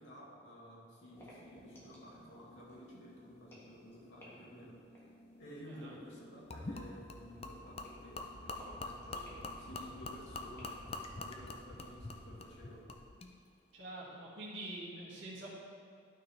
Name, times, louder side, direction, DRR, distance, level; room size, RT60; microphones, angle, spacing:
voice 1, 0.0-4.8 5.4-12.9, equal, 80° left, -5 dB, 2.1 m, -53 dB
sound 1, 1.1-12.8, equal, 10° left, 1.5 m, -58 dB
Gurgling / Liquid, 6.5-13.3, left 2 dB, 30° left, 0.5 m, -45 dB
voice 2, 13.7-15.5, right 1 dB, 85° right, -7 dB, 2.0 m, -45 dB
12.0 x 5.8 x 3.3 m, 2.3 s
head